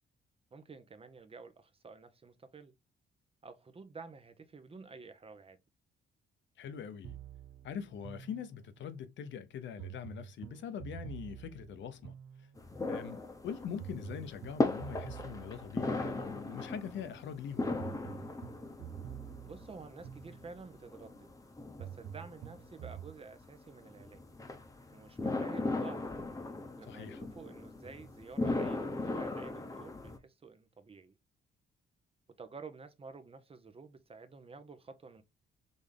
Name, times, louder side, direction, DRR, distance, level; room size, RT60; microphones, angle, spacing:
voice 1, 0.5-2.7 3.4-5.6 19.4-21.3 21.8-24.2 24.9-26.0 26.8-31.2 32.4-35.2, right 4 dB, 30° right, 0.9 m, -51 dB
voice 2, 6.6-7.2 7.6-12.1 12.4-12.5 12.9-17.7 26.9-27.2, left 7 dB, 70° left, 0.8 m, -43 dB
sound 1, 7.0-8.9 9.8-12.9 13.8-16.9 17.8-20.8 21.8-23.2, right 10 dB, 80° right, 0.5 m, -48 dB
sound 2, 12.6-30.2, left 2 dB, 15° left, 0.9 m, -38 dB
4.0 x 3.5 x 3.4 m
cardioid pair, 90°, 20 cm